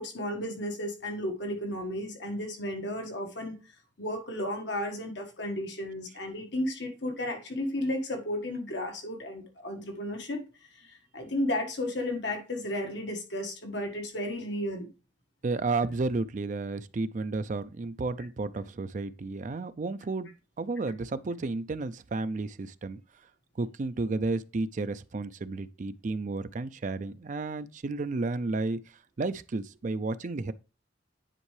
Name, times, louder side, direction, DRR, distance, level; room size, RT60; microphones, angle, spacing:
voice 1, 0.0-3.6 4.0-10.4 10.7-14.9, left 1 dB, 70° left, 1.4 m, -33 dB
voice 2, 15.4-20.3 20.6-23.0 23.6-28.8 29.2-30.5, right 3 dB, 40° right, 0.4 m, -32 dB
9.9 x 4.4 x 3.2 m
head